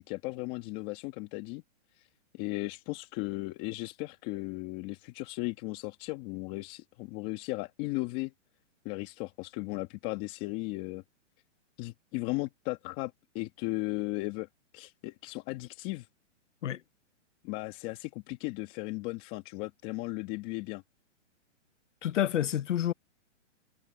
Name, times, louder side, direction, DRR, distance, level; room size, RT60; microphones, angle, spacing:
voice 1, 0.0-1.6 2.3-8.3 8.8-11.0 11.8-14.5 14.7-16.1 17.4-20.8, left 21 dB, 25° left, 1.6 m, -36 dB
voice 2, 22.0-22.9, left 11 dB, 75° left, 0.9 m, -28 dB
hypercardioid pair, 155°, 37 cm